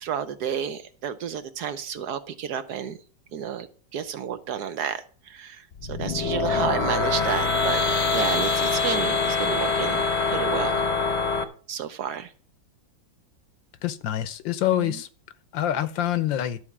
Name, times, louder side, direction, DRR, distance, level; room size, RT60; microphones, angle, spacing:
voice 1, 0.0-3.0 3.3-3.7 3.9-7.8 8.1-10.9 11.7-12.3 14.7-14.9, right 8 dB, 65° right, 1.1 m, -31 dB
sound 1, 5.7-11.4, left 4 dB, 45° left, 0.9 m, -24 dB
voice 2, 13.8-15.1 15.5-16.6, left 12 dB, 80° left, 1.5 m, -26 dB
12.0 x 4.4 x 7.2 m
omnidirectional pair, 2.1 m